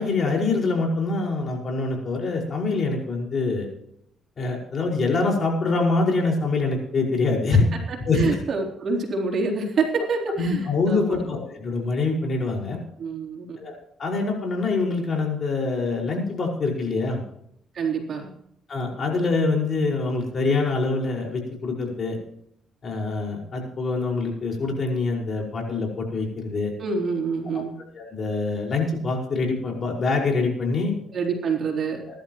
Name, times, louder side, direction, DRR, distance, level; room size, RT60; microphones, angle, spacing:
voice 1, 0.0-3.7 4.4-7.7 8.1-8.4 10.4-12.8 13.6-17.2 18.7-22.2 22.8-26.7 27.9-30.9 32.1-32.2, left 3 dB, 50° left, 0 dB, 5.3 m, -25 dB
voice 2, 7.9-11.2 13.0-13.6 17.7-18.3 26.8-27.7 31.1-32.0, right 4 dB, 55° right, 0 dB, 3.8 m, -27 dB
21.5 x 11.5 x 3.1 m, 0.73 s
cardioid pair, 90°, 0 cm